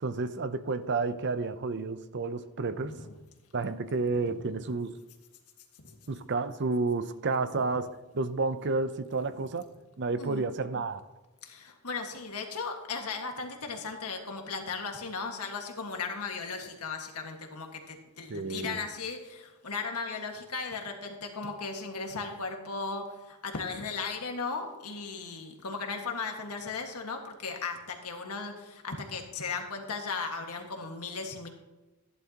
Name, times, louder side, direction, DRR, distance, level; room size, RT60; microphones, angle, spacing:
voice 1, 0.0-3.0 3.5-4.9 6.1-9.6 10.0-11.0 18.3-18.8, right 3 dB, 50° right, 0.6 m, -31 dB
voice 2, 4.1-4.5 5.8-6.0 10.2-10.5 11.4-31.5, left 4 dB, 90° left, 1.7 m, -37 dB
15.0 x 11.0 x 2.9 m
head